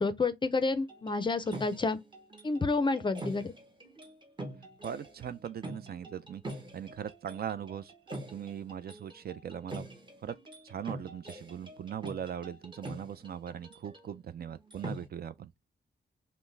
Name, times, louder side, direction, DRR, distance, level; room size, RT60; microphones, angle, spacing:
voice 1, 0.0-2.0 2.4-3.5, left 3 dB, 25° left, 0.4 m, -29 dB
sound 1, 0.9-14.2 14.5-15.1, right 1 dB, 25° right, 0.9 m, -45 dB
voice 2, 4.8-6.4 6.7-7.9 8.3-9.9 10.2-10.3 10.6-15.5, right 9 dB, 60° right, 0.4 m, -40 dB
5.5 x 2.1 x 3.2 m
wide cardioid pair, 175°, 18 cm